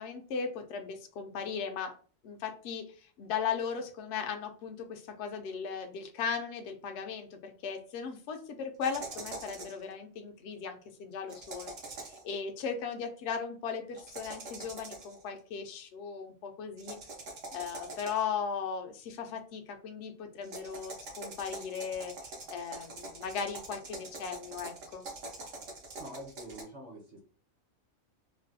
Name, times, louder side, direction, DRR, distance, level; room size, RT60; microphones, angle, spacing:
voice 1, 0.0-1.9 2.2-2.8 3.2-11.7 12.1-17.0 17.5-22.1 22.5-25.0, left 6 dB, 65° left, 5 dB, 0.8 m, -37 dB
sound 1, 8.8-9.8 11.3-12.3 13.9-15.2 16.8-18.4 20.4-26.6, right 2 dB, 75° right, 1.3 m, -44 dB
voice 2, 26.0-27.2, right 1 dB, 45° right, 1 dB, 0.6 m, -46 dB
3.3 x 2.2 x 2.6 m, 0.41 s
omnidirectional pair, 1.3 m